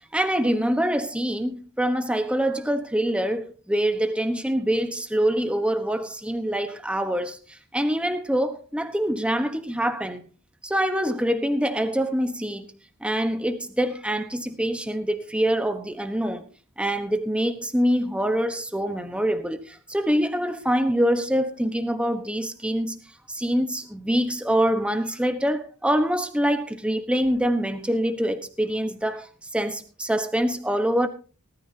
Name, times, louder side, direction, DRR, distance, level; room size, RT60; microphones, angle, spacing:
voice 1, 0.1-10.2 10.6-12.7 13.0-16.4 16.8-23.0 23.3-29.3 29.5-31.1, equal, 5° right, 1.1 m, -25 dB
19.0 x 13.0 x 2.8 m
head